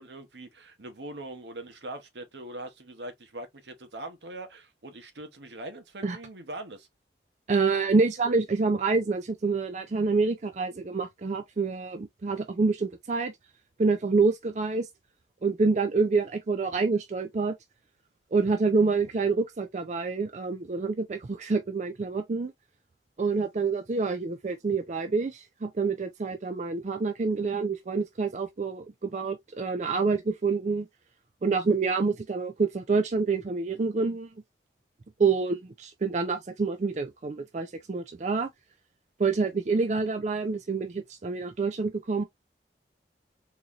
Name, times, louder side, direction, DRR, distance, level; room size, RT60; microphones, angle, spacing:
voice 1, 0.0-6.9, right 1 dB, 75° right, 0.9 m, -42 dB
voice 2, 7.5-13.3 13.8-14.9 15.4-17.5 18.3-22.5 23.2-30.9 31.4-34.3 35.2-38.5 39.2-42.2, right 4 dB, 40° right, 0.4 m, -27 dB
3.9 x 3.0 x 2.4 m
head